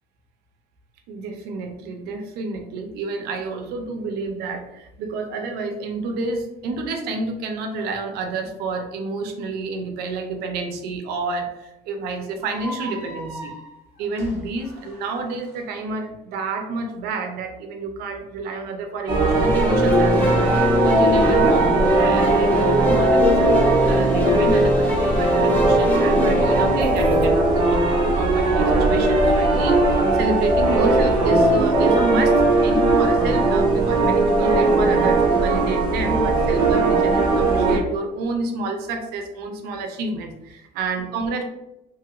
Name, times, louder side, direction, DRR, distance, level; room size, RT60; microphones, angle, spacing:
voice 1, 1.1-13.5 14.0-41.4, right 3 dB, 80° right, 4 dB, 0.6 m, -29 dB
sound 1, 12.4-15.6, equal, 15° right, 1.0 m, -38 dB
sound 2, 19.1-37.8, right 2 dB, 30° right, 0.6 m, -19 dB
sound 3, 19.3-27.3, left 1 dB, 10° left, 0.5 m, -22 dB
2.9 x 2.4 x 2.9 m, 0.92 s
cardioid pair, 150°, 16 cm